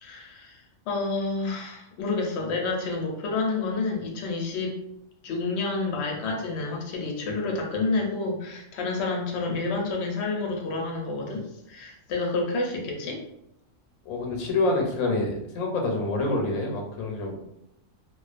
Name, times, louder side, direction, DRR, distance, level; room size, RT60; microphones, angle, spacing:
voice 1, 0.0-4.8 5.2-13.2, left 3 dB, 65° left, 0 dB, 0.8 m, -29 dB
voice 2, 14.1-17.3, left 2 dB, 90° left, 1 dB, 1.0 m, -27 dB
2.4 x 2.3 x 2.4 m, 0.80 s
omnidirectional pair, 1.4 m